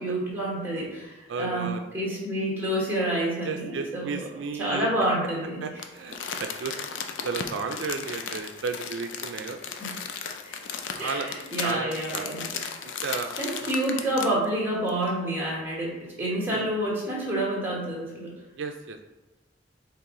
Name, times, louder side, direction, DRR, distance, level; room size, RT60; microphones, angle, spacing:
voice 1, 0.0-4.3 4.6-5.6 9.8-9.9 10.4-10.6 11.0-12.5 13.4-18.3, right 1 dB, 10° right, -5 dB, 1.3 m, -28 dB
voice 2, 1.3-1.9 3.4-4.9 5.6-6.7 7.2-9.6 10.9-11.3 11.6-12.3 12.8-13.3 13.6-13.7 16.5-16.7 18.6-19.0, right 5 dB, 75° right, 5 dB, 0.4 m, -33 dB
Crumpling crinkling, 5.8-14.4 14.9-15.0, left 6 dB, 85° left, 0.5 m, -35 dB
4.6 x 3.0 x 3.7 m, 1.1 s
head